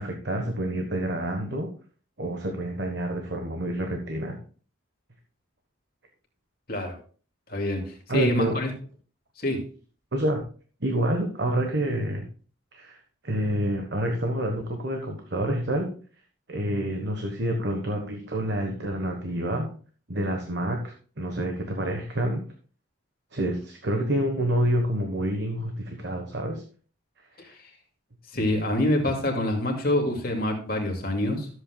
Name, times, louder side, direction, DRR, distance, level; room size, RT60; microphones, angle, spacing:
voice 1, 0.0-1.7 2.2-4.4 8.1-8.6 10.1-10.4 10.8-12.2 12.7-13.0 13.2-15.9 16.5-19.7 20.1-22.4 23.3-26.6 27.4-27.5, right 1 dB, 55° right, 3 dB, 1.2 m, -28 dB
voice 2, 7.5-8.7 9.4-9.7 27.4-27.6 28.3-31.5, left 1 dB, 45° left, 1 dB, 2.3 m, -26 dB
13.5 x 7.9 x 2.3 m, 0.40 s
head